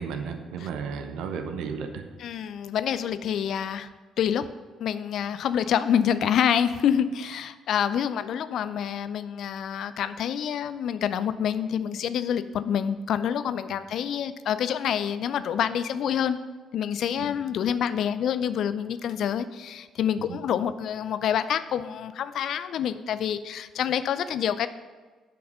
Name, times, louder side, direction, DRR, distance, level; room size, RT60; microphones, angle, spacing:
voice 1, 0.0-1.9 20.2-20.4, right 6 dB, 65° right, 7 dB, 0.8 m, -33 dB
voice 2, 2.2-3.9 4.2-4.5 4.8-16.4 16.7-24.7, left 8 dB, 60° left, 13 dB, 0.4 m, -27 dB
9.1 x 5.4 x 5.5 m, 1.4 s
figure-of-eight pair, 45°, 0 cm